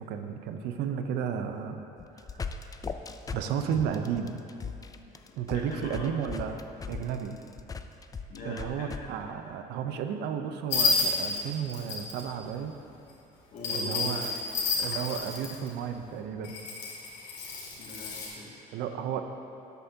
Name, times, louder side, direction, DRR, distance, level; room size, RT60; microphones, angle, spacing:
voice 1, 0.0-1.8 2.1-2.5 3.3-4.4 5.4-6.6 6.9-7.4 8.4-12.8 13.7-14.3 14.8-16.5 18.7-19.2, right 8 dB, 85° right, 6 dB, 0.7 m, -33 dB
sound 1, 2.0-9.0, left 5 dB, 20° left, 0.4 m, -38 dB
voice 2, 5.0-6.1 8.3-8.9 13.5-14.4 17.8-18.8, left 2 dB, 55° left, -4 dB, 2.1 m, -42 dB
sound 2, 10.7-12.2 13.6-15.7 16.4-18.3, left 4 dB, 85° left, 2.1 m, -30 dB
12.5 x 8.1 x 2.8 m, 2.7 s
cardioid pair, 110°, 17 cm